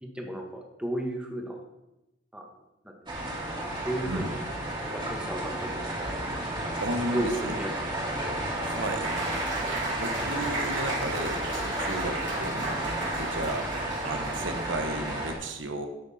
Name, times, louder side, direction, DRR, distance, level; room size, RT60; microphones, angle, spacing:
voice 1, 0.0-1.6 2.3-2.4 3.8-4.3 4.8-5.9 7.1-8.1 8.9-9.2, right 1 dB, 5° right, 1 dB, 1.4 m, -34 dB
sound 1, 3.1-15.3, right 1 dB, 25° right, 2.5 m, -32 dB
voice 2, 6.8-7.5 8.6-9.1 10.0-15.9, right 1 dB, 85° right, 6 dB, 1.2 m, -34 dB
Applause, 9.0-14.7, right 2 dB, 70° right, 3.3 m, -35 dB
12.0 x 6.4 x 4.3 m, 0.96 s
head